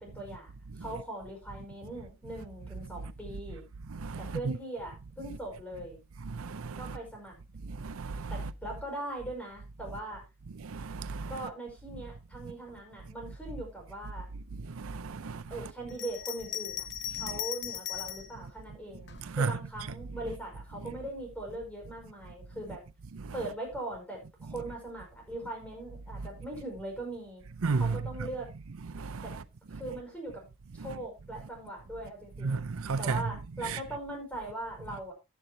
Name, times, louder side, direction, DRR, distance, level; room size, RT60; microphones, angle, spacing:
voice 1, 0.0-3.6 4.2-6.0 6.8-7.4 8.3-10.2 11.3-14.3 15.5-22.8 23.3-27.4 27.8-28.5 29.2-29.3 29.7-30.4 30.7-32.6 33.0-35.1, right 1 dB, 5° left, 5.3 m, -40 dB
voice 2, 3.9-4.4 6.3-7.0 7.6-8.4 10.6-11.3 14.7-15.6 17.1-17.4 19.2-19.5 23.2-23.3 27.6-28.0 28.9-29.4 30.8-30.9 32.4-33.2 33.6-33.8, right 4 dB, 75° right, 0.6 m, -34 dB
Bell, 15.9-18.3 19.1-20.0, left 12 dB, 55° left, 1.0 m, -38 dB
14.5 x 9.9 x 2.9 m
head